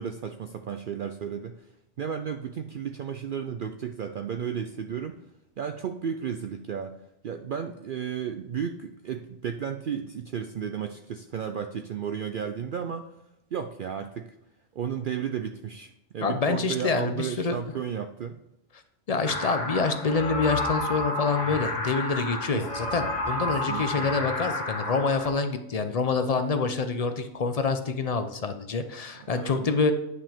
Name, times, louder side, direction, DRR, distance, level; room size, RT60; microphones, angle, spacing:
voice 1, 0.0-1.7 2.0-5.2 5.6-7.0 7.2-13.1 13.5-14.3 14.8-18.4 22.5-22.6 23.7-24.1 29.2-29.7, right 7 dB, 65° right, 7 dB, 0.5 m, -33 dB
voice 2, 16.2-17.6 19.1-29.9, left 4 dB, 45° left, 8 dB, 0.5 m, -26 dB
sound 1, 19.2-25.3, left 1 dB, 65° left, 2.0 m, -31 dB
9.6 x 5.8 x 3.5 m, 0.87 s
omnidirectional pair, 1.4 m